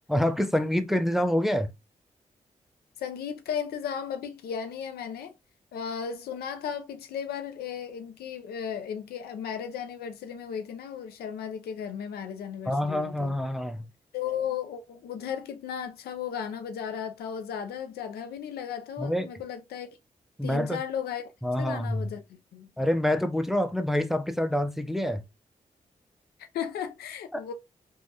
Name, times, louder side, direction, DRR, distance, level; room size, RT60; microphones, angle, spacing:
voice 1, 0.1-1.7 12.7-13.8 19.0-19.3 20.4-20.8 21.4-22.1 22.8-25.2 27.3-27.4, left 1 dB, ahead, 0.5 m, -26 dB
voice 2, 3.0-5.3 5.7-13.4 14.1-19.9 20.4-21.3 21.6-22.7 26.4-27.5, left 8 dB, 85° left, 0.4 m, -35 dB
3.2 x 2.3 x 2.7 m
supercardioid pair, 45°, 16 cm